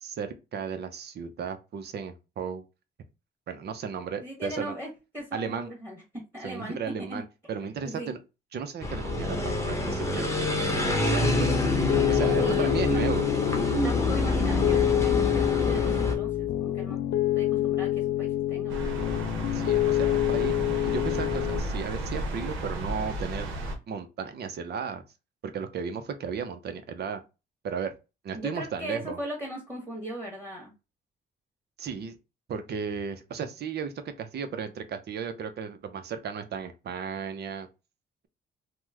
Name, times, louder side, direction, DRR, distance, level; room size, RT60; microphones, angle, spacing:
voice 1, 0.0-2.6 3.5-4.7 5.3-5.7 6.4-8.2 8.5-10.5 10.8-11.7 12.1-13.3 19.5-20.5 20.8-23.5 23.9-25.0 25.4-27.2 27.6-27.9 28.2-29.2 31.8-32.2 32.5-37.7, right 6 dB, 55° right, 0.6 m, -35 dB
voice 2, 4.1-7.2 7.8-8.1 12.4-13.0 13.8-17.0 17.3-19.0 28.3-30.7, equal, 10° right, 1.4 m, -38 dB
sound 1, 8.8-16.2, left 1 dB, 15° left, 0.8 m, -27 dB
Piano, 11.2-21.6, left 13 dB, 60° left, 0.4 m, -27 dB
sound 2, 18.7-23.8, right 1 dB, 90° right, 0.8 m, -33 dB
3.0 x 2.1 x 3.5 m
cardioid pair, 90°, 20 cm